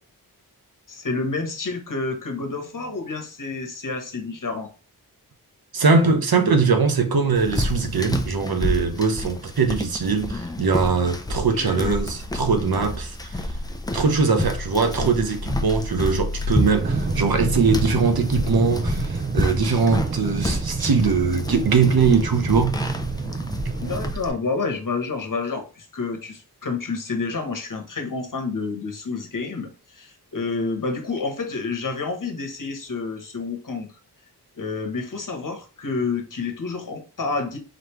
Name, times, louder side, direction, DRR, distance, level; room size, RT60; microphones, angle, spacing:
voice 1, 0.9-4.7 11.6-12.0 23.8-33.9 34.6-37.6, left 4 dB, 55° left, 1.2 m, -29 dB
voice 2, 5.7-13.5 13.9-22.8, right 4 dB, 65° right, 1.0 m, -21 dB
sound 1, 7.3-24.3, left 1 dB, 10° left, 0.7 m, -29 dB
sound 2, 16.8-24.1, right 4 dB, 25° right, 0.5 m, -28 dB
4.1 x 3.3 x 3.0 m
wide cardioid pair, 65°, 38 cm